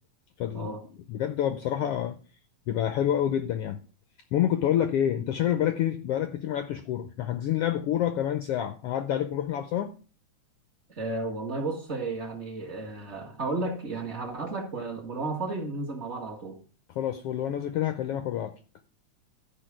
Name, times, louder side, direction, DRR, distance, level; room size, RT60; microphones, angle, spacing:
voice 1, 0.4-0.7 1.1-2.2 2.7-3.8 4.3-9.9 17.0-18.5, left 10 dB, 80° left, 1.4 m, -28 dB
voice 2, 10.9-16.6, right 3 dB, 30° right, 1.5 m, -33 dB
12.5 x 5.2 x 5.9 m
omnidirectional pair, 3.4 m